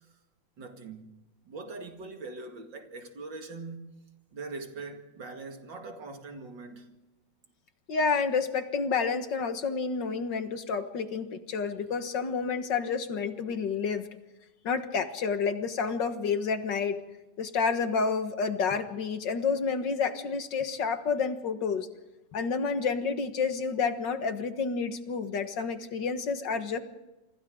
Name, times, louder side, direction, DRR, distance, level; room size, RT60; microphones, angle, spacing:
voice 1, 0.6-1.1 1.5-4.0 4.3-7.0, right 3 dB, 80° right, 2.9 m, -42 dB
voice 2, 7.9-14.1 14.6-17.0 17.4-21.9 22.3-26.8, left 5 dB, 75° left, 2.2 m, -29 dB
28.5 x 25.0 x 3.8 m
omnidirectional pair, 2.0 m